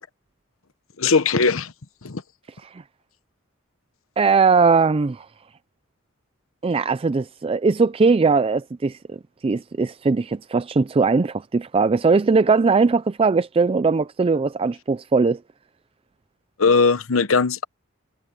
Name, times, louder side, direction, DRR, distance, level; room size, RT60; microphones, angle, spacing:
voice 1, 1.0-1.7 2.0-2.2 16.6-17.6, left 4 dB, 85° left, 1.0 m, -19 dB
voice 2, 4.2-5.3 6.6-9.2 9.4-15.4, right 4 dB, 30° right, 0.4 m, -19 dB
head